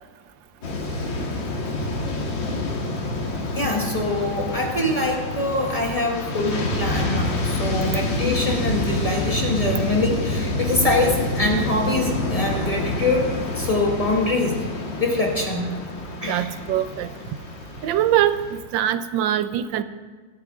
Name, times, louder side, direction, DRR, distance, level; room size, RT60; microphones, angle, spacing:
sound 1, 0.6-18.6, left 2 dB, 85° left, 2.3 m, -27 dB
voice 1, 3.5-14.7 15.0-15.7 16.2-16.5, left 2 dB, 20° left, -2 dB, 1.4 m, -24 dB
voice 2, 16.3-17.1 17.8-19.8, right 11 dB, 85° right, 12 dB, 1.3 m, -23 dB
20.0 x 12.0 x 2.5 m, 1.4 s
omnidirectional pair, 2.0 m